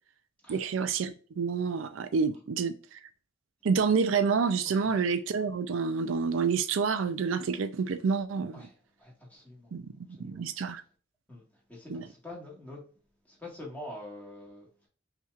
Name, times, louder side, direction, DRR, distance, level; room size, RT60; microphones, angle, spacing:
voice 1, 0.5-3.0 3.6-8.7 9.7-10.8 11.9-12.1, right 5 dB, 75° right, 0.4 m, -28 dB
voice 2, 9.0-9.7 10.2-10.4 11.3-11.4 11.7-12.8 13.3-14.7, left 1 dB, 10° left, 1.7 m, -45 dB
5.6 x 2.9 x 2.4 m
head